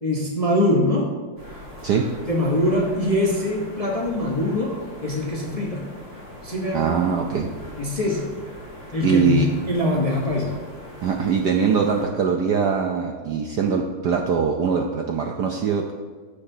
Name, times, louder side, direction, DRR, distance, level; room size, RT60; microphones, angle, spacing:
voice 1, 0.0-1.1 2.3-5.9 6.4-6.9 7.8-8.4 8.9-10.6, left 1 dB, 25° left, -3 dB, 0.9 m, -23 dB
sound 1, 1.4-12.0, equal, 30° right, 2.2 m, -41 dB
voice 2, 6.7-7.5 9.0-9.5 11.0-15.9, right 6 dB, 70° right, 2 dB, 1.0 m, -22 dB
15.0 x 6.9 x 2.8 m, 1.5 s
omnidirectional pair, 2.4 m